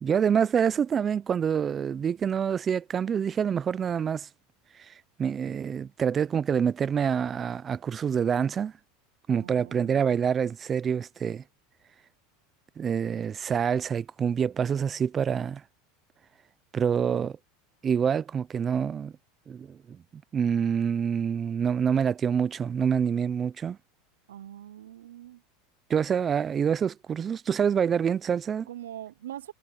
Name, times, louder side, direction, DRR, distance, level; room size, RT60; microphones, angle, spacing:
voice 1, 0.0-4.3 4.8-4.9 5.2-8.7 9.3-11.4 12.8-15.6 16.7-17.4 17.8-19.1 19.5-23.8 25.9-28.7, right 7 dB, 30° right, 0.6 m, -26 dB
voice 2, 9.4-10.0 24.3-25.4 28.7-29.5, right 11 dB, 90° right, 0.6 m, -42 dB
supercardioid pair, 105°, 0 cm